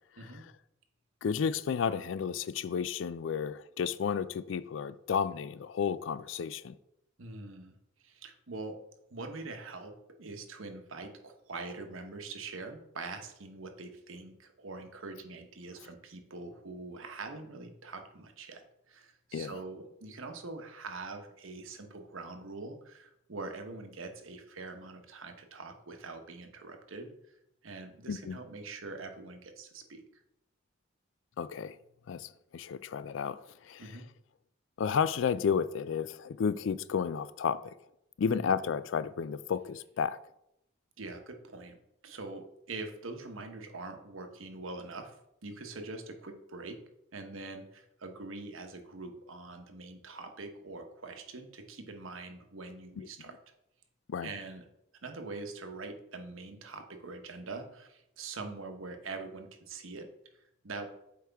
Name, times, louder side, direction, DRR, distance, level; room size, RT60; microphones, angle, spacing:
voice 1, 1.2-6.8 19.3-19.5 28.1-28.4 31.4-31.8 32.1-34.0 34.8-37.7 38.2-40.2 53.0-53.1 54.1-54.3, left 6 dB, 70° left, 0.3 m, -32 dB
voice 2, 7.2-7.8 8.0-8.8 9.1-27.1 27.6-30.0 33.8-34.1 38.2-38.4 41.0-41.8 42.0-45.1 45.4-46.8 47.1-53.4 54.2-54.6 55.0-60.1 60.6-60.8, right 3 dB, 85° right, 1.0 m, -44 dB
7.9 x 4.8 x 3.5 m
head